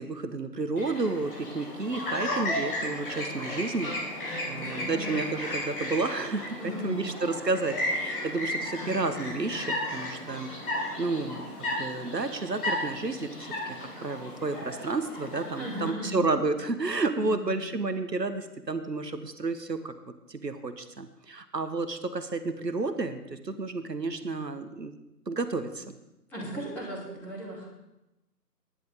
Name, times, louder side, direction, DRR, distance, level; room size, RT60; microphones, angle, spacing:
voice 1, 0.0-10.5 11.0-11.4 11.8-13.5 14.0-19.9 20.3-24.9 25.3-25.9, right 3 dB, 80° right, 10 dB, 1.2 m, -31 dB
Chirp tweet, 0.8-15.9, left 1 dB, 35° left, 4.2 m, -34 dB
voice 2, 4.6-5.2 6.6-7.0 15.6-16.3 17.1-17.5 26.3-27.7, right 1 dB, 5° left, -9 dB, 2.3 m, -37 dB
19.0 x 10.5 x 3.6 m, 0.94 s
figure-of-eight pair, 150°, 49 cm